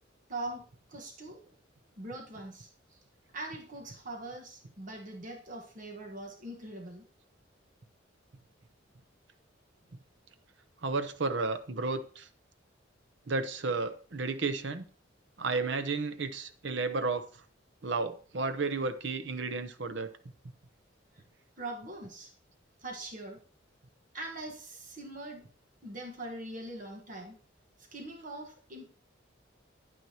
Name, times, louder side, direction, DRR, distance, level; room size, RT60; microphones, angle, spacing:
voice 1, 0.3-1.6 2.0-3.0 3.3-7.1 21.6-22.3 22.8-23.4 24.1-25.5 25.8-27.4 27.8-28.9, right 2 dB, 40° right, 1 dB, 1.4 m, -42 dB
voice 2, 10.8-12.3 13.3-14.8 15.4-17.3 17.8-20.1, right 3 dB, 65° right, 10 dB, 0.8 m, -32 dB
9.8 x 9.3 x 2.9 m, 0.41 s
head